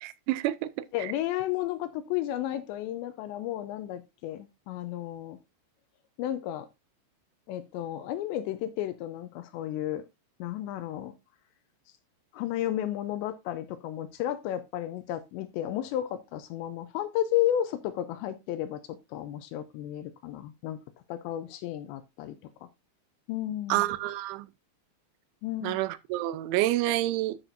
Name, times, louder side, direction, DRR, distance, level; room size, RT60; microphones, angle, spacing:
voice 1, 0.0-1.1 23.7-24.5 25.6-27.4, right 15 dB, 85° right, 2.9 m, -28 dB
voice 2, 0.9-5.4 6.2-6.7 7.5-10.0 10.4-11.1 12.3-18.8 19.1-20.8 21.1-22.4 23.3-23.9 25.4-25.8, left 12 dB, 80° left, 2.7 m, -32 dB
13.0 x 6.0 x 2.6 m
omnidirectional pair, 5.4 m